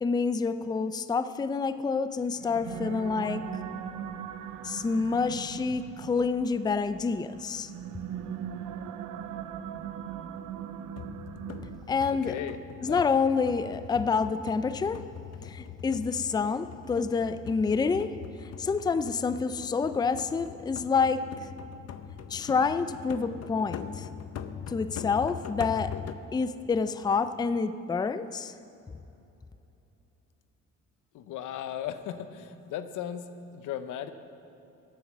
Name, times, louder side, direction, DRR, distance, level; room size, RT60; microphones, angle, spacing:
voice 1, 0.0-3.5 4.6-7.7 11.9-12.3 12.8-15.0 15.5-18.1 18.6-21.2 22.3-24.0 24.7-25.9 26.3-28.5, left 5 dB, 15° left, 11 dB, 0.4 m, -28 dB
sound 1, 2.3-12.2, right 8 dB, 90° right, 0.7 m, -40 dB
sound 2, 11.0-26.1, left 8 dB, 55° left, 0.7 m, -42 dB
voice 2, 12.1-12.6 12.9-13.0 31.1-34.1, left 10 dB, 85° left, 10 dB, 0.8 m, -36 dB
14.0 x 8.2 x 6.1 m, 2.9 s
cardioid pair, 90°, 30 cm